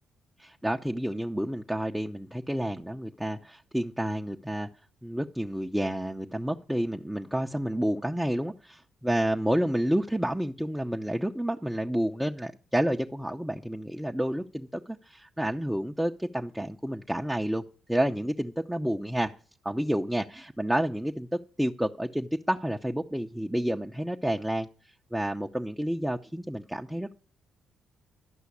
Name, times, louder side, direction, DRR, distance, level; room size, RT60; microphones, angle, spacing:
voice 1, 0.4-4.7 5.0-17.6 17.9-19.3 19.6-21.3 21.6-24.7 25.1-27.1, right 1 dB, 5° right, 1 dB, 0.6 m, -30 dB
12.5 x 5.6 x 8.4 m, 0.39 s
cardioid pair, 90°, 0 cm